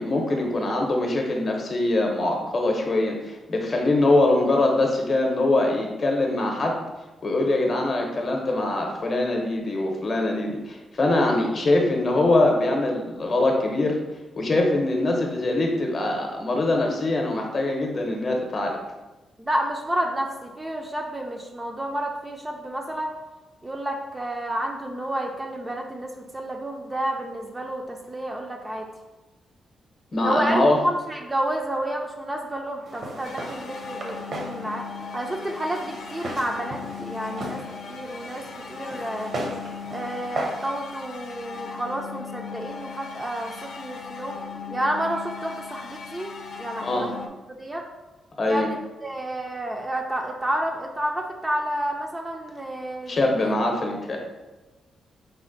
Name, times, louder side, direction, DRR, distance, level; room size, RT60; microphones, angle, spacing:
voice 1, 0.0-6.7 7.2-14.0 14.4-18.7 30.1-30.8 46.8-47.1 48.4-48.7 53.1-54.2, left 2 dB, 40° left, 1 dB, 0.7 m, -23 dB
voice 2, 19.4-23.1 23.6-28.9 30.2-34.8 35.1-37.6 37.9-39.3 39.9-44.4 44.7-47.2 47.5-47.9 48.5-53.5, right 1 dB, 15° right, 1 dB, 0.4 m, -30 dB
Walk footsteps, 32.9-40.7, right 1 dB, 55° right, 0.7 m, -36 dB
sound 1, 33.2-47.3, left 6 dB, 60° left, 0.4 m, -38 dB
4.2 x 2.1 x 3.8 m, 1.1 s
cardioid pair, 120°, 0 cm